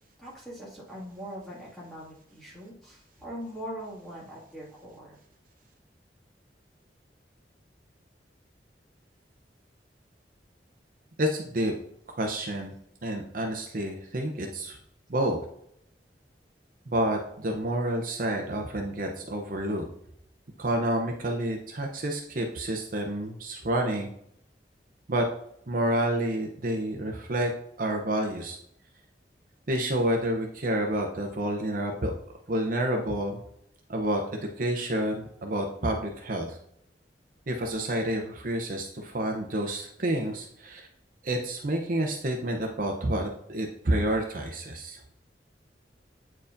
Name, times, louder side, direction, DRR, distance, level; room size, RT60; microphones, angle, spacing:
voice 1, 0.2-5.1, equal, ahead, -6 dB, 2.1 m, -41 dB
voice 2, 11.2-11.7 12.2-12.7 13.0-14.8 15.1-15.4 16.9-19.8 20.6-24.1 25.1-25.3 25.7-27.5 27.8-28.6 29.7-32.1 32.5-33.4 33.9-34.2 34.6-36.6 37.5-40.9 41.2-45.0, right 1 dB, 50° right, 2 dB, 0.7 m, -29 dB
8.4 x 4.6 x 2.6 m, 0.72 s
head